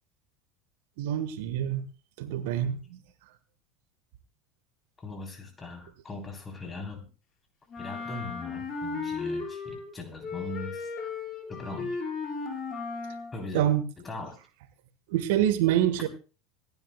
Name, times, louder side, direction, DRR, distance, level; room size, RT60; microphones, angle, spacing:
voice 1, 1.0-1.8 2.2-3.0 13.5-13.8 15.1-16.1, right 11 dB, 60° right, 1.3 m, -26 dB
voice 2, 5.0-7.1 7.8-10.9 11.5-12.0 13.3-13.7 14.0-14.4, left 2 dB, 20° left, 3.6 m, -40 dB
Wind instrument woodwind instrument, 7.7-9.9 10.2-13.3, left 4 dB, 35° left, 5.0 m, -35 dB
26.0 x 10.5 x 2.2 m
figure-of-eight pair, 75°, 0 cm